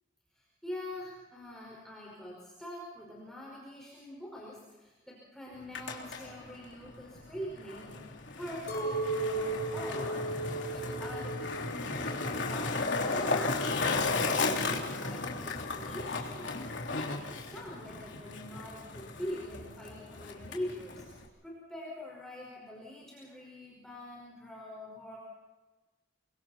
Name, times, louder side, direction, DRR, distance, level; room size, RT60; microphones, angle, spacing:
voice 1, 0.3-25.2, left 1 dB, 5° left, -4 dB, 5.2 m, -44 dB
Skateboard, 5.5-21.3, left 3 dB, 80° left, 3.3 m, -35 dB
Chink clink, 8.7-13.0 13.3-14.1, right 2 dB, 50° left, 5.3 m, -36 dB
29.0 x 24.0 x 4.4 m, 1.2 s
head